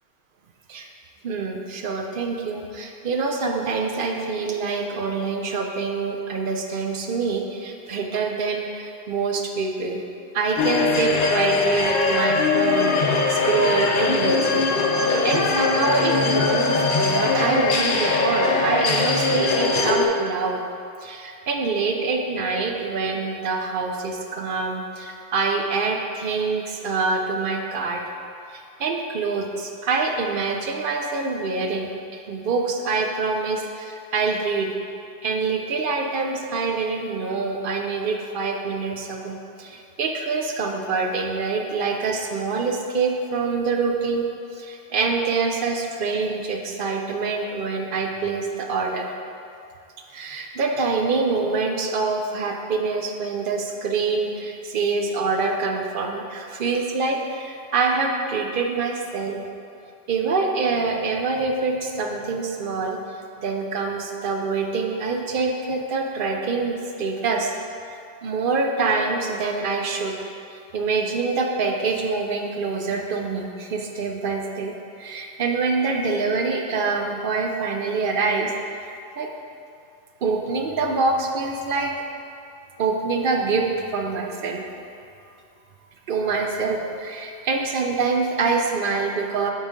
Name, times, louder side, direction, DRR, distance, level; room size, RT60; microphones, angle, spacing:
voice 1, 1.2-10.0 10.3-14.8 15.2-20.6 21.0-28.0 28.5-34.7 35.2-44.3 44.5-49.1 50.1-59.4 60.1-63.0 63.4-67.5 67.9-70.1 70.5-74.7 75.0-79.3 80.2-81.9 82.8-84.6 86.1-89.5, right 4 dB, 55° right, 2 dB, 0.6 m, -25 dB
sound 1, 10.6-20.1, left 3 dB, 55° left, 0.6 m, -21 dB
8.9 x 4.0 x 3.6 m, 2.5 s
omnidirectional pair, 1.3 m